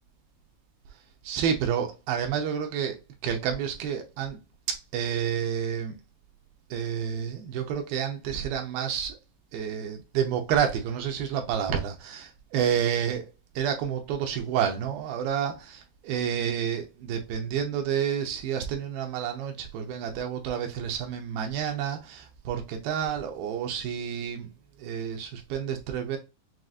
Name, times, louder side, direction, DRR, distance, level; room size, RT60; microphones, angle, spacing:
voice 1, 1.2-3.0 3.2-4.4 4.9-6.0 6.7-9.2 9.5-13.3 13.6-24.5 24.8-26.2, right 8 dB, 80° right, 2.6 m, -29 dB
7.5 x 2.6 x 2.4 m
omnidirectional pair, 4.3 m